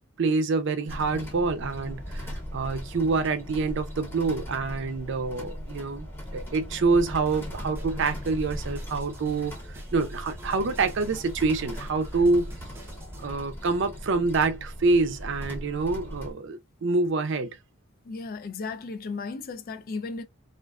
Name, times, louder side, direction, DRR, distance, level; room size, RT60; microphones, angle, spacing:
voice 1, 0.2-6.1 6.3-12.5 13.2-17.5, right 3 dB, 60° right, 0.5 m, -26 dB
sound 1, 0.9-16.3, equal, 10° left, 1.0 m, -38 dB
sound 2, 7.3-13.3, right 1 dB, 10° right, 0.5 m, -48 dB
voice 2, 18.0-20.2, left 4 dB, 45° left, 0.4 m, -35 dB
2.4 x 2.3 x 2.2 m
head